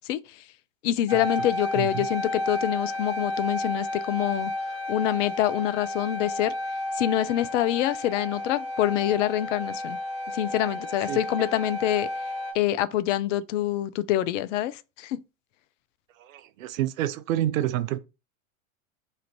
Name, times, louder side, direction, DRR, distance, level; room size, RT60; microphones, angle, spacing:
voice 1, 0.1-0.4 0.8-4.5 4.9-6.5 6.9-10.0 10.3-12.1 12.5-15.2, left 13 dB, 65° left, 0.5 m, -26 dB
sound 1, 1.1-12.5, left 1 dB, 15° right, 0.9 m, -32 dB
voice 2, 1.7-2.1 11.1-11.2 16.2-18.0, right 13 dB, 75° right, 0.6 m, -28 dB
3.0 x 2.5 x 4.4 m
hypercardioid pair, 95°, 40 cm